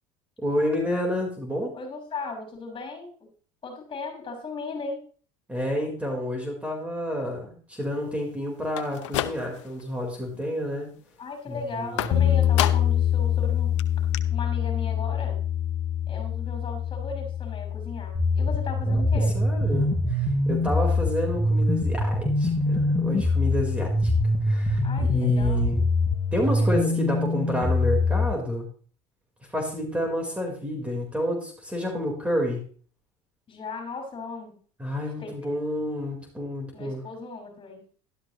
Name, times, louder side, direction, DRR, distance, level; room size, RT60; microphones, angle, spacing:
voice 1, 0.4-1.7 5.5-10.9 11.5-12.3 18.9-24.1 24.4-25.8 26.3-28.7 29.5-32.6 34.8-37.0, left 1 dB, 10° right, 0 dB, 4.3 m, -29 dB
voice 2, 1.7-3.1 3.6-5.0 11.2-13.7 14.3-15.4 16.1-19.4 24.8-25.6 26.6-26.9 33.5-34.6 35.2-35.5 36.7-37.8, left 3 dB, 35° left, 3 dB, 6.2 m, -37 dB
sound 1, 8.6-9.8 10.2-10.7 12.0-13.1 13.4-13.5 13.8-13.9 14.1-14.2, left 14 dB, 85° left, 0.8 m, -30 dB
sound 2, 12.1-22.1, left 10 dB, 60° left, 1.5 m, -27 dB
sound 3, 18.2-28.3, left 2 dB, 15° left, 5.7 m, -24 dB
13.0 x 12.5 x 3.2 m, 0.43 s
supercardioid pair, 90°, 15 cm